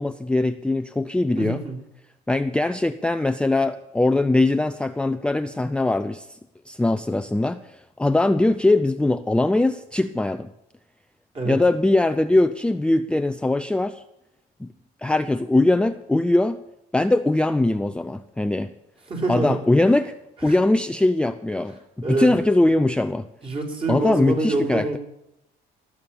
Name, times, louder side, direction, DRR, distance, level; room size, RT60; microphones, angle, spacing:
voice 1, 0.0-1.6 2.3-6.4 6.7-10.5 11.5-14.0 14.6-14.7 15.0-16.6 16.9-18.7 19.3-20.2 20.4-21.8 22.1-23.3 23.9-25.0, left 2 dB, 5° left, 9 dB, 0.5 m, -21 dB
voice 2, 1.4-1.8 11.3-11.6 19.1-19.6 20.4-20.5 22.0-22.3 23.4-25.0, right 2 dB, 35° right, 2 dB, 4.0 m, -25 dB
19.0 x 7.3 x 8.6 m, 0.85 s
cardioid pair, 110°, 17 cm